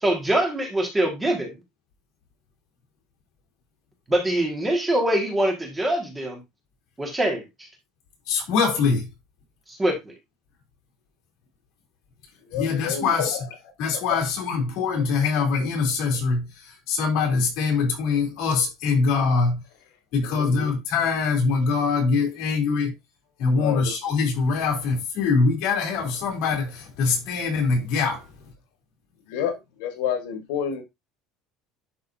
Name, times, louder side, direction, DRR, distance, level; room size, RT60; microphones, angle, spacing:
voice 1, 0.0-1.5 4.1-6.4 7.0-7.4 9.8-10.1, right 1 dB, 10° right, 1.7 m, -23 dB
voice 2, 8.3-9.1 12.5-13.4 13.8-19.6 20.1-22.9 23.4-28.2, left 4 dB, 60° left, 3.1 m, -23 dB
voice 3, 12.4-13.5 13.9-14.2 20.2-20.6 23.6-23.8 24.2-24.3 29.3-30.8, left 9 dB, 85° left, 1.4 m, -29 dB
11.0 x 3.9 x 2.6 m
cardioid pair, 175°, 0 cm